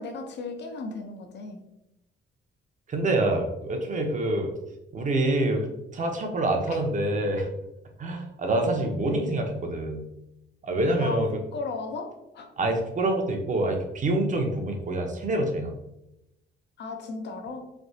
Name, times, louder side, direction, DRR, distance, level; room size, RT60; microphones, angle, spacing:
voice 1, 0.0-1.6 6.7-6.8 11.0-11.2 11.5-12.5 16.8-17.6, left 3 dB, 60° left, 4 dB, 0.7 m, -35 dB
voice 2, 2.9-4.5 4.9-7.5 8.0-10.1 10.6-11.4 12.6-15.7, right 2 dB, 40° right, 3 dB, 0.7 m, -26 dB
3.2 x 2.8 x 2.7 m, 0.88 s
cardioid pair, 90°, 20 cm